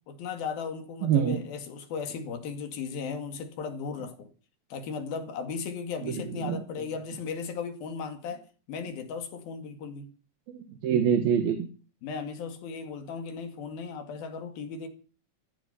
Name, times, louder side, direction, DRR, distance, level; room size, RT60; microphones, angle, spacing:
voice 1, 0.1-4.3 4.7-10.1 12.0-14.9, left 5 dB, 85° left, 4.1 m, -36 dB
voice 2, 1.0-1.4 6.0-6.6 10.5-11.7, right 8 dB, 80° right, 3.4 m, -26 dB
15.5 x 15.0 x 5.7 m
omnidirectional pair, 4.2 m